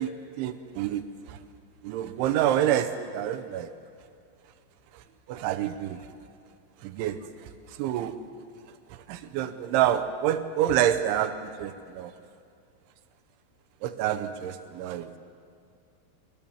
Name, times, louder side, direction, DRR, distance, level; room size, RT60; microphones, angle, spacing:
voice 1, 0.0-1.4 1.8-3.7 4.9-5.0 5.3-6.0 6.8-8.2 8.9-12.1 13.8-15.1, right 11 dB, 80° right, 10 dB, 3.3 m, -28 dB
23.0 x 22.5 x 7.2 m, 2.3 s
omnidirectional pair, 5.4 m